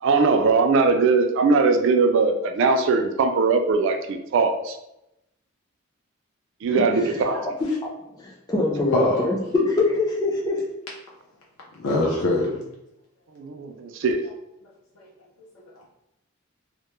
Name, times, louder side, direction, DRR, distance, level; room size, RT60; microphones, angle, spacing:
voice 1, 0.0-4.8 6.6-7.5 13.4-14.2, right 4 dB, 60° right, 6 dB, 0.3 m, -20 dB
voice 2, 6.8-7.7 8.2-10.6, left 2 dB, 20° left, -2 dB, 0.5 m, -24 dB
voice 3, 8.9-9.3 11.8-12.6 15.0-15.1 15.7-15.9, left 2 dB, 80° left, -4 dB, 0.5 m, -23 dB
2.2 x 2.0 x 2.9 m, 0.85 s
head